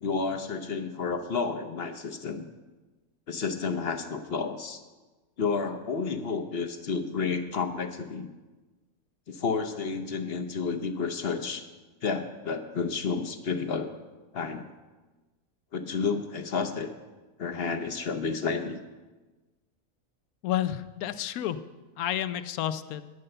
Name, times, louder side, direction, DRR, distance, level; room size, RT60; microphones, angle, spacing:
voice 1, 0.0-2.5 3.3-4.8 5.4-8.3 9.3-11.6 12.0-13.9 14.3-14.7 15.7-16.9 17.4-18.8, left 5 dB, 55° left, 8 dB, 0.8 m, -31 dB
voice 2, 20.4-21.6 22.0-23.1, left 11 dB, 90° left, 13 dB, 1.1 m, -30 dB
11.0 x 6.7 x 7.7 m, 1.2 s
omnidirectional pair, 1.5 m